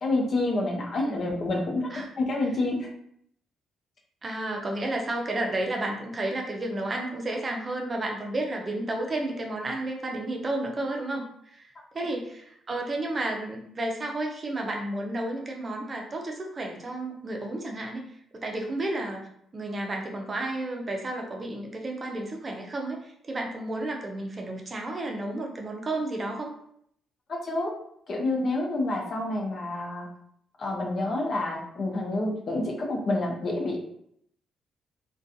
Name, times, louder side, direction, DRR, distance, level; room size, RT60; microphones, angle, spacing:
voice 1, 0.0-1.9 2.2-2.9 27.3-27.7 28.1-30.1 30.6-33.8, left 2 dB, 50° left, 0 dB, 0.6 m, -28 dB
voice 2, 4.2-11.7 11.9-18.0 18.4-19.3 19.5-26.5, right 2 dB, 30° right, 1 dB, 0.5 m, -32 dB
2.4 x 2.2 x 2.6 m, 0.69 s
cardioid pair, 90°, 0 cm